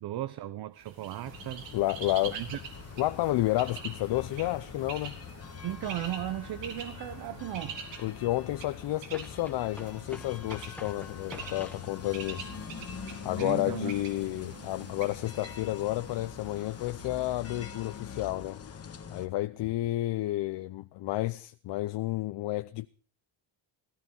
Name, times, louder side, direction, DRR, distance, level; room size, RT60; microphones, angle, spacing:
voice 1, 0.0-1.6 2.3-2.6 5.6-7.8 13.4-14.0, right 13 dB, 60° right, 0.8 m, -36 dB
Bird, 0.8-18.6, right 6 dB, 90° right, 4.3 m, -46 dB
sound 1, 1.2-19.3, left 7 dB, 35° left, 1.5 m, -44 dB
voice 2, 1.7-2.4 3.0-5.2 8.0-12.5 13.2-18.6 19.1-22.9, left 16 dB, 70° left, 0.7 m, -31 dB
sound 2, 6.7-6.8 9.1-11.9, left 1 dB, 5° left, 1.4 m, -48 dB
16.5 x 16.0 x 5.3 m
cardioid pair, 165°, 44 cm